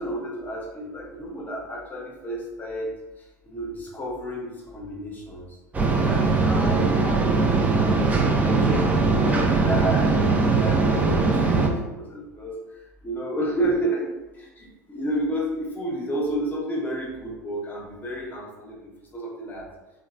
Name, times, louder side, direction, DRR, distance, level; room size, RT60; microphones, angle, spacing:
voice 1, 0.0-2.9 3.5-5.5 6.1-14.1 14.3-18.8 19.1-19.7, right 1 dB, 20° left, -2 dB, 0.8 m, -31 dB
sound 1, 5.7-11.7, right 3 dB, 15° right, 0.4 m, -21 dB
2.9 x 2.1 x 2.4 m, 1.0 s
figure-of-eight pair, 80°, 9 cm